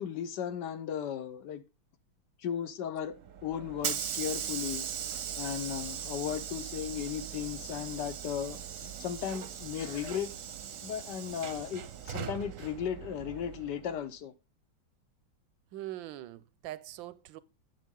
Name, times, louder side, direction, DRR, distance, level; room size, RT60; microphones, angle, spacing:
voice 1, 0.0-1.6 2.4-3.1 3.4-4.9 5.4-10.3 10.8-14.3, left 9 dB, 65° left, 1.4 m, -36 dB
Hiss / Sliding door, 3.1-14.0, right 9 dB, 55° right, 0.9 m, -39 dB
voice 2, 15.7-17.4, right 14 dB, 80° right, 1.4 m, -42 dB
9.3 x 7.3 x 3.7 m
omnidirectional pair, 2.1 m